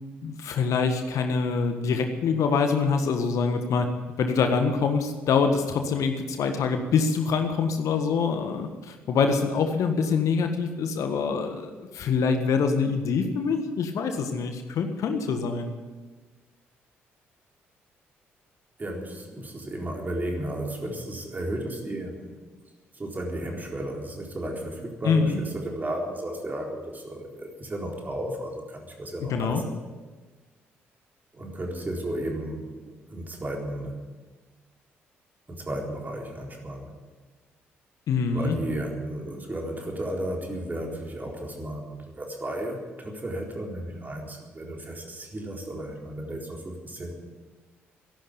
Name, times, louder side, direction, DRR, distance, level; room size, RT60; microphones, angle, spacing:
voice 1, 0.2-3.9 4.2-15.7 25.0-25.4 29.3-29.6 38.1-38.6, left 5 dB, 60° left, 6 dB, 1.5 m, -25 dB
voice 2, 18.8-22.4 22.9-29.8 31.3-34.0 35.5-36.9 38.3-47.2, right 1 dB, 30° right, 0 dB, 4.1 m, -34 dB
14.0 x 11.5 x 8.4 m, 1.3 s
figure-of-eight pair, 45°, 6 cm